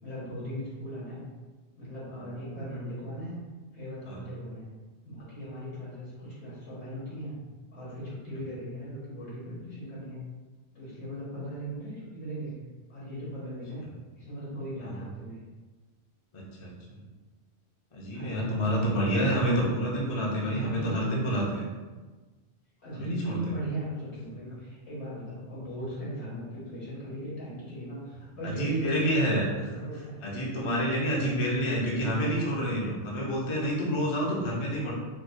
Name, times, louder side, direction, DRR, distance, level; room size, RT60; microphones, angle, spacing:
voice 1, 0.0-1.2 1.8-3.4 3.7-4.7 5.0-7.4 7.7-10.2 10.7-12.5 12.9-13.8 14.1-15.4 18.1-19.1 20.6-21.1 22.8-30.2 31.0-31.4, right 1 dB, 70° left, -7 dB, 1.6 m, -38 dB
voice 2, 16.3-16.7 17.9-21.7 22.9-23.4 28.6-29.5 30.2-34.9, equal, 35° left, -4 dB, 0.5 m, -28 dB
4.5 x 2.1 x 2.6 m, 1.3 s
omnidirectional pair, 1.2 m